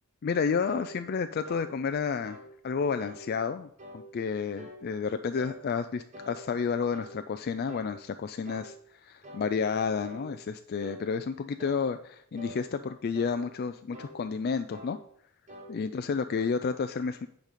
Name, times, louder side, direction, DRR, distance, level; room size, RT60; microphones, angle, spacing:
voice 1, 0.2-2.4 2.6-3.7 3.9-8.7 9.0-15.0 15.7-17.3, left 5 dB, 45° left, 8 dB, 0.3 m, -31 dB
sound 1, 0.7-0.9 1.4-1.7 2.2-2.5 3.0-3.2 3.8-4.0 4.6-4.8 5.3-5.6 6.1-7.2 7.7-7.9 8.4-8.7 9.2-9.5 10.0-10.3 10.8-11.1 11.6-11.8 12.4-12.6 13.1-13.4 13.9-14.2 14.7-14.9 15.5-15.7, equal, 30° right, 1.4 m, -45 dB
9.0 x 5.3 x 5.0 m, 0.66 s
head